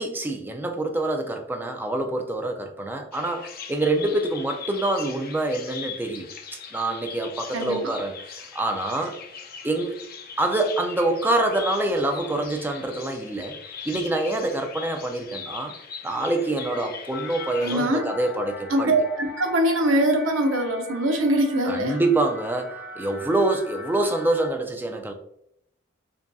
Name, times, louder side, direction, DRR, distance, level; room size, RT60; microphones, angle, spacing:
voice 1, 0.0-6.3 6.7-9.2 9.6-10.0 10.4-13.5 13.9-15.7 16.0-18.9 21.7-25.1, right 2 dB, 10° right, 4 dB, 0.4 m, -26 dB
Bird vocalization bird call bird song, 3.1-17.9, left 6 dB, 50° left, 0.5 m, -40 dB
voice 2, 7.5-7.9 17.6-18.1 18.7-22.0, right 1 dB, 75° right, 5 dB, 0.6 m, -23 dB
sound 1, 17.1-24.5, left 3 dB, 65° left, 1.3 m, -41 dB
5.0 x 2.6 x 2.3 m, 0.75 s
head